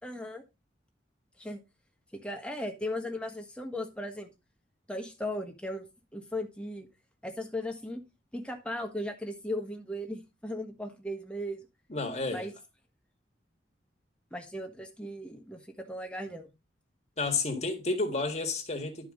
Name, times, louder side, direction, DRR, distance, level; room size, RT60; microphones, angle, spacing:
voice 1, 0.0-0.4 1.4-1.6 2.1-4.3 4.9-5.9 6.1-6.9 7.2-8.0 8.3-11.6 12.3-12.5 14.3-16.5, left 1 dB, 5° left, 1.4 m, -37 dB
voice 2, 11.9-12.5 17.2-19.1, left 3 dB, 35° left, 1.7 m, -31 dB
11.5 x 4.8 x 3.7 m
head